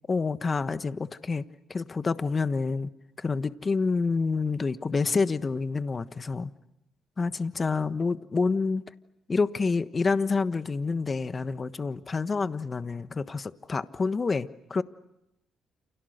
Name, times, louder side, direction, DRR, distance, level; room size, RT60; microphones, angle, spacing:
voice 1, 0.1-1.4 1.7-2.9 3.2-6.5 7.2-8.8 9.3-14.8, left 4 dB, 35° left, 11 dB, 1.3 m, -28 dB
30.0 x 29.0 x 6.7 m, 0.87 s
cardioid pair, 90°, 0 cm